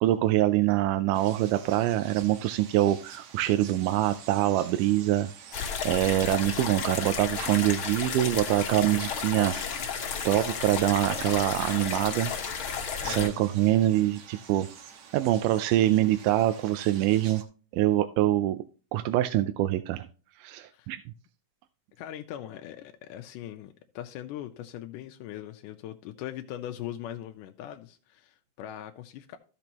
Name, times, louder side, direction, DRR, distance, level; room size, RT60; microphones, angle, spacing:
voice 1, 0.0-5.3 5.9-12.3 13.0-14.7 15.1-17.4 17.7-18.6 18.9-20.1 20.4-21.0, right 14 dB, 85° right, 2.1 m, -25 dB
sound 1, 1.1-17.4, right 7 dB, 65° right, 2.2 m, -48 dB
sound 2, 5.5-13.3, left 6 dB, 55° left, 1.6 m, -33 dB
voice 2, 13.0-13.4 20.7-20.9 22.0-29.4, left 12 dB, 90° left, 2.2 m, -40 dB
14.0 x 6.1 x 2.9 m
omnidirectional pair, 3.7 m